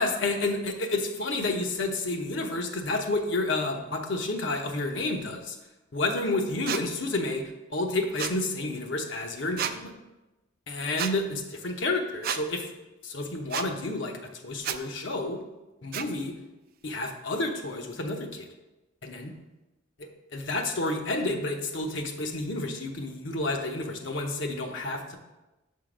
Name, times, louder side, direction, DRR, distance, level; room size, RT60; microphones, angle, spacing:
voice 1, 0.0-5.6 5.9-9.9 10.7-12.7 13.0-15.4 15.8-16.3 16.8-18.5 19.0-19.3 20.0-25.2, left 2 dB, 65° left, 3 dB, 0.8 m, -30 dB
sound 1, 6.7-6.8 8.2-8.4 9.6-9.8 11.0-11.1 12.2-12.4 13.5-13.7 14.6-14.8 15.9-16.1, right 9 dB, 50° right, 0.3 m, -30 dB
6.7 x 3.8 x 5.0 m, 1.0 s
head